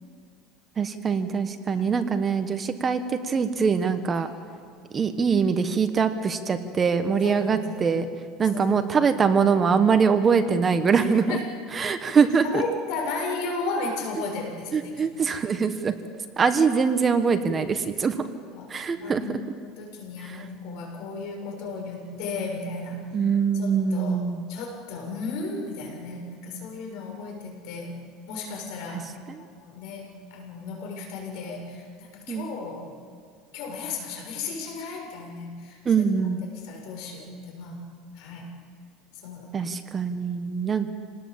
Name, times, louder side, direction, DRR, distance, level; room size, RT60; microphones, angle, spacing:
voice 1, 0.8-4.3 4.9-8.0 8.4-11.4 11.7-12.6 14.7-15.9 16.4-18.1 18.7-19.2 23.1-24.4 29.3-29.4 32.3-32.5 35.8-36.4 39.5-40.9, right 6 dB, 25° right, 9 dB, 1.2 m, -23 dB
voice 2, 7.2-8.0 8.5-9.1 10.9-11.4 12.4-15.6 18.5-18.7 19.0-19.3 19.6-23.1 23.5-24.2 24.5-28.0 28.3-32.9 33.5-36.0 36.5-37.8 38.2-38.6 39.2-39.7, left 3 dB, 70° left, 1 dB, 7.1 m, -35 dB
28.0 x 19.0 x 7.4 m, 2.1 s
cardioid pair, 140°, 0 cm